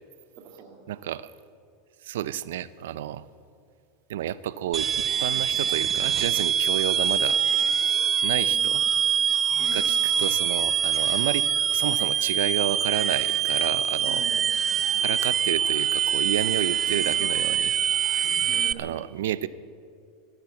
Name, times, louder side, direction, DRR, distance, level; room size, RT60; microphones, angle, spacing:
voice 1, 0.4-1.0 8.5-8.9 9.6-10.0 14.0-14.6 18.5-19.1, right 4 dB, 45° right, 0 dB, 2.2 m, -44 dB
voice 2, 0.9-1.3 2.0-3.3 4.1-7.4 8.2-8.8 9.7-14.2 15.0-17.7 18.8-19.5, right 11 dB, 85° right, 18 dB, 0.5 m, -30 dB
sound 1, 4.7-18.7, right 8 dB, 25° right, 0.5 m, -24 dB
sound 2, 5.7-18.6, right 4 dB, 60° right, 4.5 m, -49 dB
13.5 x 13.0 x 8.2 m, 2.3 s
supercardioid pair, 135°, 0 cm